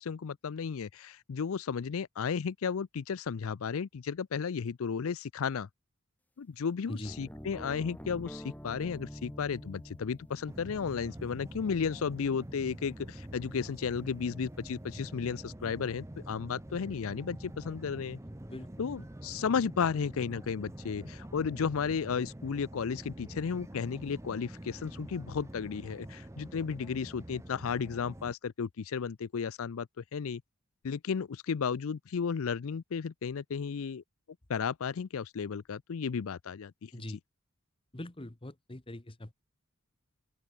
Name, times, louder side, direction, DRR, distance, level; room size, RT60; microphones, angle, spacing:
voice 1, 0.0-5.7 6.4-18.2 18.8-30.4 30.8-34.0 34.5-36.9, left 6 dB, 70° left, 0.5 m, -34 dB
sound 1, 7.0-14.9, equal, 5° left, 1.8 m, -49 dB
sound 2, 10.5-28.3, right 1 dB, 15° right, 0.8 m, -46 dB
voice 2, 37.9-39.3, left 1 dB, 25° left, 1.2 m, -42 dB
open air
head